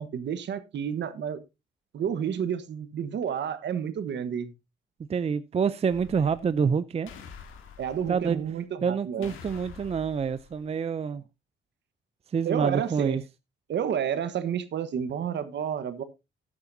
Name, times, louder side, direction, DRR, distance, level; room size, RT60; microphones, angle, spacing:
voice 1, 0.0-1.4 1.9-4.5 7.8-9.3 12.4-13.2 13.7-16.0, right 8 dB, 65° right, 1.2 m, -30 dB
voice 2, 5.1-7.1 8.1-8.4 8.8-11.2 12.3-13.2, right 6 dB, 30° right, 0.5 m, -27 dB
sound 1, 5.9-6.6 7.1-8.5 9.2-10.6, left 6 dB, 85° left, 2.0 m, -47 dB
13.5 x 9.6 x 2.7 m
cardioid pair, 90°, 20 cm